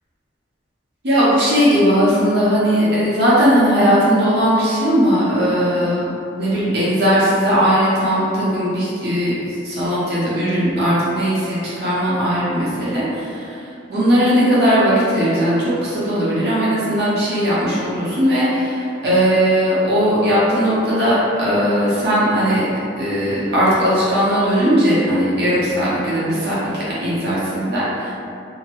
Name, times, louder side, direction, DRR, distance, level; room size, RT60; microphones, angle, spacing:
voice 1, 1.0-22.6 23.0-28.1, equal, 55° right, -9 dB, 0.8 m, -18 dB
2.8 x 2.0 x 2.9 m, 2.5 s
head